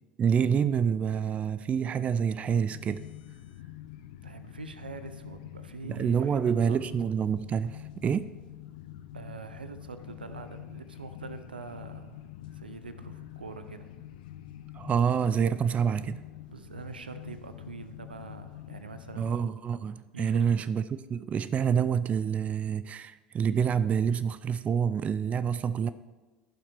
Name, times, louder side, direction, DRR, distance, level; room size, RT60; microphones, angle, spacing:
voice 1, 0.2-3.0 5.9-8.3 14.7-16.2 19.2-25.9, right 7 dB, 25° right, 14 dB, 0.3 m, -27 dB
sound 1, 2.5-19.5, left 13 dB, 65° left, 0.5 m, -46 dB
voice 2, 4.2-6.8 9.1-13.9 16.5-19.4 20.1-20.5, right 4 dB, 80° right, 10 dB, 0.5 m, -44 dB
15.0 x 5.7 x 3.3 m, 1.2 s
figure-of-eight pair, 75°, 5 cm